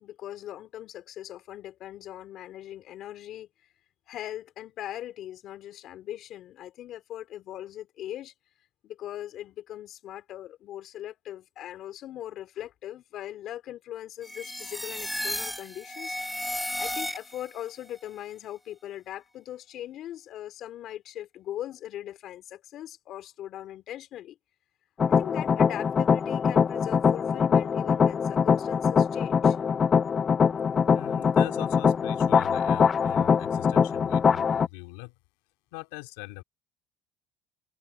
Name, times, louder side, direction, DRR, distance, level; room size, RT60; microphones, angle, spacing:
voice 1, 0.0-3.5 4.1-8.3 8.8-24.4 25.1-29.6, left 12 dB, 60° left, 2.9 m, -40 dB
sound 1, 14.2-17.6, equal, 5° left, 0.9 m, -34 dB
sound 2, 25.0-34.7, left 6 dB, 35° left, 0.4 m, -23 dB
voice 2, 30.9-35.1 35.7-36.4, left 24 dB, 85° left, 2.6 m, -41 dB
supercardioid pair, 85°, 0 cm